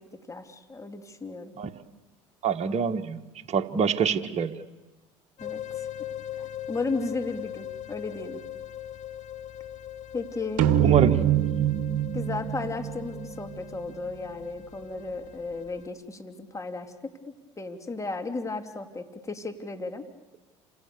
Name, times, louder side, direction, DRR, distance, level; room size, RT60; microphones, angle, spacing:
voice 1, 0.0-1.6 5.4-5.9 6.4-8.4 10.1-11.2 12.1-17.1 17.6-20.0, left 3 dB, 20° left, 6 dB, 3.2 m, -35 dB
voice 2, 2.4-3.2 3.5-4.5 10.8-11.2, right 7 dB, 45° right, 8 dB, 1.8 m, -24 dB
sound 1, 5.4-15.9, left 11 dB, 50° left, 1.6 m, -40 dB
sound 2, 10.6-14.1, right 11 dB, 65° right, 1.3 m, -25 dB
28.5 x 27.0 x 7.1 m, 1.1 s
hypercardioid pair, 75°, 16 cm